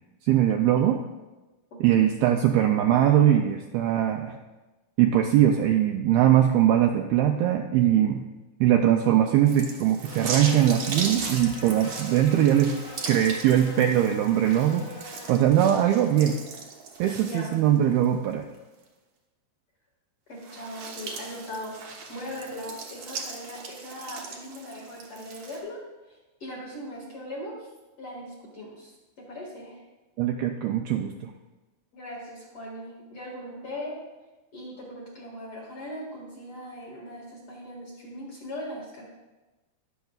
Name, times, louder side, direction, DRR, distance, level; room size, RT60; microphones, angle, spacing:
voice 1, 0.3-1.0 1.8-4.4 5.0-8.2 8.6-12.8 13.1-16.4 17.0-18.4 30.2-31.3, right 11 dB, 85° right, 3 dB, 2.2 m, -21 dB
sound 1, 9.5-18.0 18.5-18.6 20.3-25.6, right 4 dB, 70° right, 1.6 m, -38 dB
Buzz, 10.0-15.3, left 1 dB, 80° left, 6.0 m, -43 dB
voice 2, 17.2-17.5 20.3-21.8 22.1-25.8 26.1-27.7 28.0-29.8 31.9-34.0 34.5-39.0, left 1 dB, 45° left, -4 dB, 2.1 m, -39 dB
21.0 x 7.0 x 2.4 m, 1.1 s
omnidirectional pair, 4.9 m